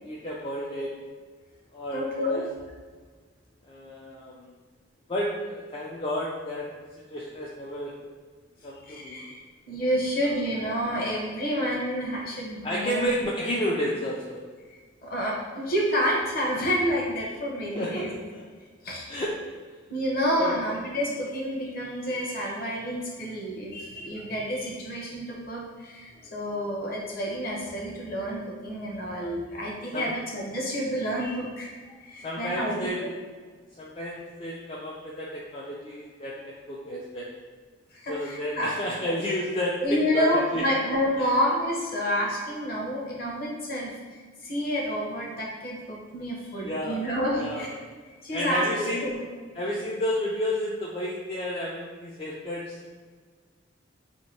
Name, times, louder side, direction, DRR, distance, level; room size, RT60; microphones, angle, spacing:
voice 1, 0.0-0.9 1.7-2.5 3.7-4.6 5.1-6.7 7.1-7.9 8.6-9.2 10.2-10.4 12.6-14.4 17.7-18.4 19.1-19.4 20.4-20.6 29.9-30.1 32.2-33.1 33.8-37.3 38.1-40.7 41.2-41.3 46.6-47.1 47.3-47.7 48.3-49.1 49.5-53.0, equal, 25° left, -4 dB, 0.3 m, -31 dB
voice 2, 1.9-2.4 8.9-9.4 9.7-13.3 15.0-18.1 18.8-19.1 19.9-31.7 32.0-33.1 37.9-38.7 39.8-43.9 44.4-47.8 48.2-49.3, equal, 45° left, -3 dB, 0.8 m, -29 dB
2.8 x 2.6 x 4.3 m, 1.5 s
head